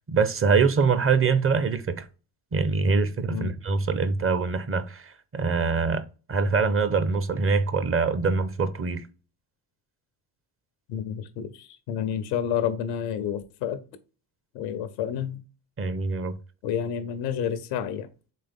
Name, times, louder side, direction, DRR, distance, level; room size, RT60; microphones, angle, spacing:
voice 1, 0.1-2.0 2.5-6.0 6.3-9.0 15.8-16.4, right 4 dB, 30° right, 0.7 m, -24 dB
voice 2, 10.9-13.8 14.5-15.4 16.6-18.1, left 9 dB, 90° left, 0.7 m, -29 dB
4.2 x 3.4 x 3.5 m
hypercardioid pair, 55°, 47 cm